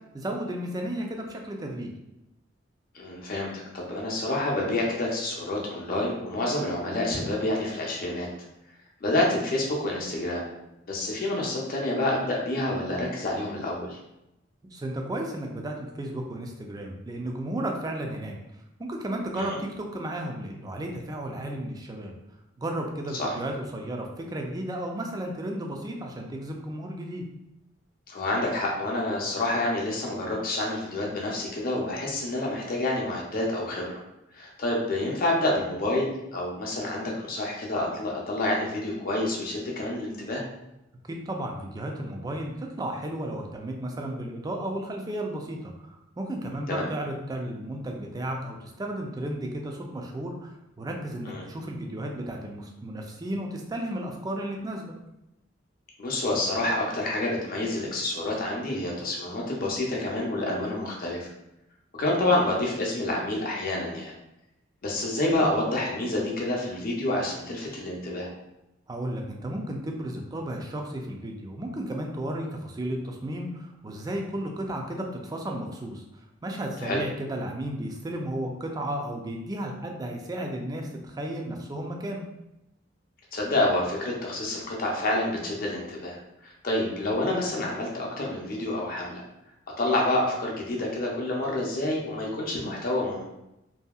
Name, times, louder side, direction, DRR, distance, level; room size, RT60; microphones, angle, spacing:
voice 1, 0.1-1.9 14.7-18.3 18.8-22.1 22.6-27.2 41.1-54.9 68.9-82.3, right 1 dB, 20° right, 2 dB, 0.3 m, -33 dB
voice 2, 2.9-8.3 9.0-10.4 10.9-14.0 19.4-19.6 23.1-23.4 28.1-34.0 34.3-40.4 46.7-46.9 51.2-51.4 56.0-61.3 62.0-64.1 64.8-68.3 76.8-77.0 83.3-89.2 89.8-93.2, left 1 dB, 50° left, -2 dB, 0.6 m, -28 dB
2.7 x 2.7 x 2.3 m, 0.88 s
head